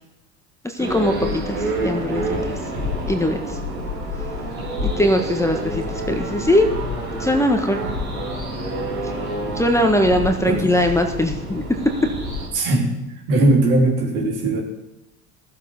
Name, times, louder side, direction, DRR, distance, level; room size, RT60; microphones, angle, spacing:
voice 1, 0.6-2.5 3.1-3.6 4.8-6.7 7.2-7.8 9.5-11.6, left 1 dB, 5° left, 4 dB, 1.4 m, -20 dB
sound 1, 0.8-12.5, equal, 85° right, 3.9 m, -28 dB
voice 2, 12.5-13.0 13.3-14.6, right 2 dB, 60° right, -1 dB, 3.5 m, -19 dB
14.0 x 7.6 x 5.5 m, 0.92 s
hypercardioid pair, 65°, 42 cm